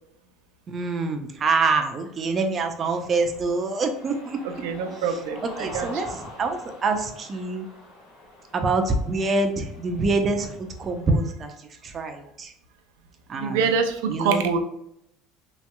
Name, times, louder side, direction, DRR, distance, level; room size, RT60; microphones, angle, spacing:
voice 1, 0.7-4.4 5.4-7.7 8.5-12.5 13.3-13.6 14.1-14.4, right 3 dB, 35° right, 5 dB, 0.5 m, -25 dB
Cheering, 2.1-11.3, left 1 dB, 85° left, 1.5 m, -45 dB
voice 2, 4.4-6.0 13.4-14.6, right 5 dB, 85° right, 7 dB, 0.4 m, -25 dB
3.1 x 2.9 x 2.2 m, 0.75 s
supercardioid pair, 110°, 0 cm